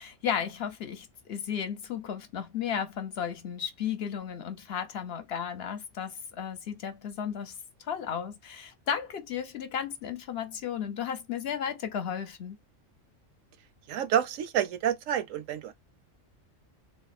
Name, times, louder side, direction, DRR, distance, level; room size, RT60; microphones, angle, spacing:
voice 1, 0.0-12.6, left 8 dB, 60° left, 0.8 m, -34 dB
voice 2, 13.9-15.7, right 9 dB, 90° right, 1.0 m, -28 dB
3.6 x 2.0 x 4.0 m
omnidirectional pair, 1.3 m